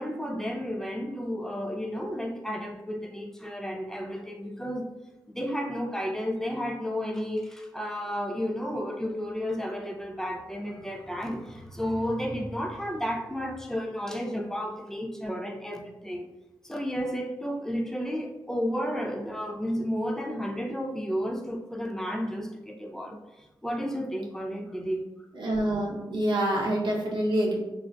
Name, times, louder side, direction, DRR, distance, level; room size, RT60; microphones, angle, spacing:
voice 1, 0.0-4.9 5.3-16.3 16.6-25.1, equal, 5° left, 2 dB, 0.4 m, -32 dB
voice 2, 25.3-27.6, right 1 dB, 75° right, -2 dB, 0.7 m, -26 dB
3.5 x 2.5 x 2.2 m, 1.0 s
wide cardioid pair, 85°, 8 cm